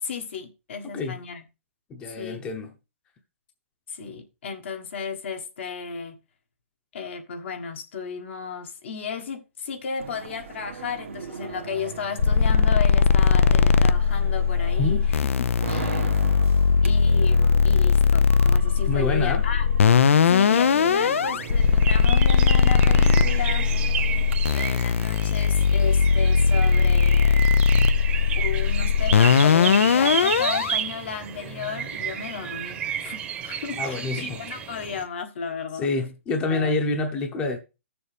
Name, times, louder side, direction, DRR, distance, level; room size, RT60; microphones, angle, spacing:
voice 1, 0.0-1.4 2.2-2.4 3.9-6.1 6.9-15.2 15.7-16.2 16.8-19.7 20.3-23.7 24.5-27.7 28.3-35.9 36.5-36.7, left 6 dB, 65° left, 1.5 m, -34 dB
voice 2, 1.9-2.7 14.8-15.1 18.8-19.4 33.8-34.4 35.8-37.6, left 3 dB, 15° left, 0.8 m, -27 dB
sound 1, 10.0-24.3, right 6 dB, 85° right, 1.3 m, -38 dB
sound 2, 12.2-30.8, left 6 dB, 85° left, 0.5 m, -19 dB
sound 3, 21.4-35.0, right 8 dB, 15° right, 0.9 m, -32 dB
13.5 x 6.9 x 3.4 m
hypercardioid pair, 160°, 7 cm